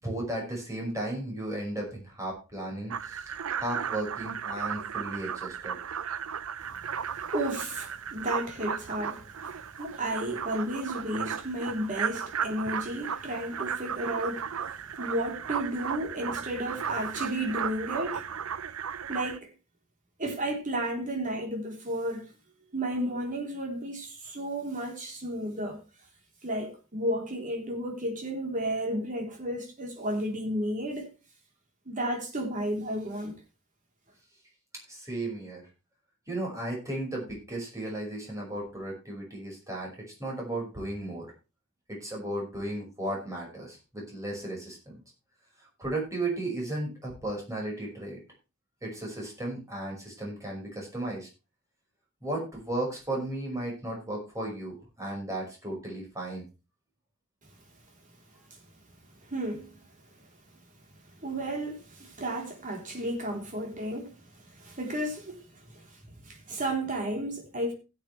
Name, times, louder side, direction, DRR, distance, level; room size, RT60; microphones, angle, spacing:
voice 1, 0.0-5.8 34.9-35.6 36.3-39.9 40.2-41.3 41.9-45.0 45.8-48.2 48.8-51.3 52.2-56.4, right 1 dB, 15° right, 5.5 m, -35 dB
sound 1, 2.9-19.4, right 7 dB, 80° right, 0.6 m, -35 dB
voice 2, 7.3-18.3 19.1-19.5 20.2-22.3 22.7-25.8 26.4-31.1 31.9-33.4 58.5-58.6 59.2-59.8 61.2-67.7, right 1 dB, 40° right, 3.6 m, -33 dB
16.5 x 8.1 x 3.3 m
head